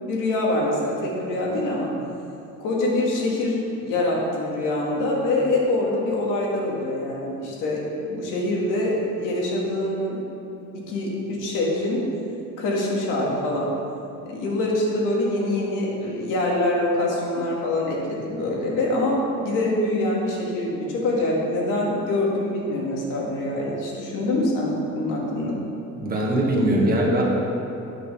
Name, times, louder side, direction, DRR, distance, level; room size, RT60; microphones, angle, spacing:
voice 1, 0.0-1.9 2.6-7.8 8.1-10.2 10.9-12.0 12.6-13.7 14.3-25.6, left 1 dB, 80° left, -3 dB, 2.2 m, -24 dB
voice 2, 25.9-27.2, right 1 dB, 30° right, -2 dB, 1.7 m, -21 dB
8.3 x 6.5 x 5.6 m, 2.8 s
cardioid pair, 140°, 32 cm